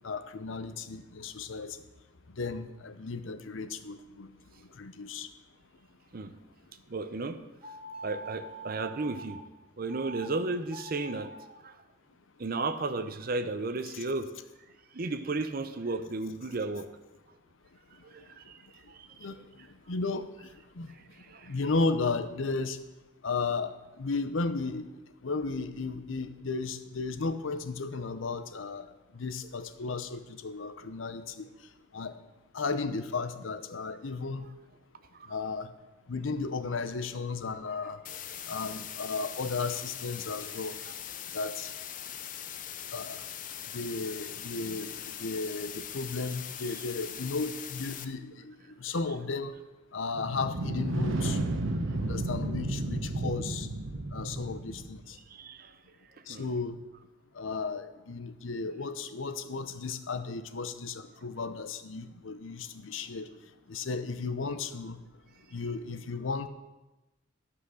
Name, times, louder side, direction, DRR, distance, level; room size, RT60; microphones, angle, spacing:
voice 1, 0.0-1.8 2.4-4.3 4.8-5.3 19.2-19.4 19.9-20.5 20.8-20.9 21.5-22.8 23.2-24.8 25.2-28.8 29.1-31.4 31.9-32.1 32.5-34.5 35.3-35.7 36.1-38.0 38.5-40.8 41.3-41.7 42.9-43.2 43.7-48.5 48.8-49.5 49.9-51.4 52.0-53.7 54.1-55.1 56.3-56.8 57.4-63.3 63.7-65.0 65.5-66.5, left 4 dB, 75° left, 10 dB, 0.7 m, -34 dB
voice 2, 6.9-7.4 8.0-9.4 9.8-11.8 12.4-14.3 14.9-16.9 18.0-19.5 20.9-21.5 35.1-35.4 38.5-38.6 40.9-41.0 46.7-46.8 48.9-49.0 51.9-52.0 55.3-55.8 56.3-56.5 60.3-60.4, right 3 dB, 50° right, 11 dB, 0.6 m, -35 dB
sound 1, 7.6-9.4 9.9-10.3 10.6-11.5, right 2 dB, 30° right, 1.0 m, -44 dB
sound 2, 38.0-48.0, left 10 dB, 40° left, 0.5 m, -41 dB
sound 3, 50.2-55.0, right 2 dB, 75° right, 1.0 m, -32 dB
13.0 x 5.7 x 6.4 m, 1.1 s
head